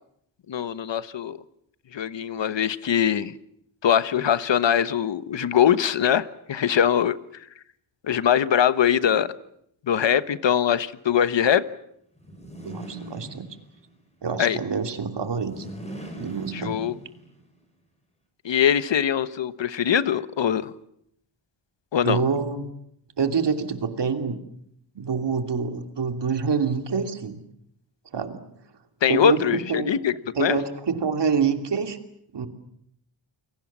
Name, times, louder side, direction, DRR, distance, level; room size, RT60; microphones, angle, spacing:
voice 1, 0.5-1.4 1.9-3.3 3.8-7.2 8.1-9.3 9.9-11.6 14.4-14.6 16.5-16.9 18.4-20.7 21.9-22.2 29.0-30.1 30.4-30.6, left 9 dB, 65° left, 15 dB, 1.2 m, -22 dB
sound 1, 12.2-13.9 15.2-17.4, right 1 dB, 15° left, 6.7 m, -39 dB
voice 2, 12.6-13.5 14.2-15.7 16.2-16.8 22.0-22.7 23.2-24.4 24.9-27.4 28.1-28.4 29.1-29.9 30.4-32.0 32.3-32.5, right 5 dB, 60° right, 7 dB, 2.9 m, -26 dB
29.5 x 22.5 x 7.4 m, 0.74 s
wide cardioid pair, 110°, 47 cm